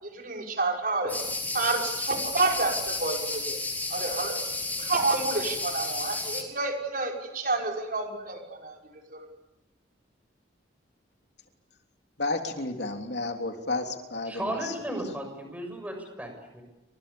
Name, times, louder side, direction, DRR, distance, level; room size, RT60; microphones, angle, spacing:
voice 1, 0.0-1.2 1.5-3.6 3.9-4.4 4.8-8.8 9.1-9.3, right 3 dB, 50° right, 1 dB, 5.7 m, -29 dB
sound 1, 1.1-6.4, left 2 dB, 10° left, 4.4 m, -32 dB
voice 2, 12.2-14.7, left 2 dB, 65° left, 4 dB, 3.3 m, -32 dB
voice 3, 14.3-16.6, right 1 dB, 10° right, 4 dB, 6.9 m, -35 dB
30.0 x 26.0 x 7.1 m, 0.99 s
head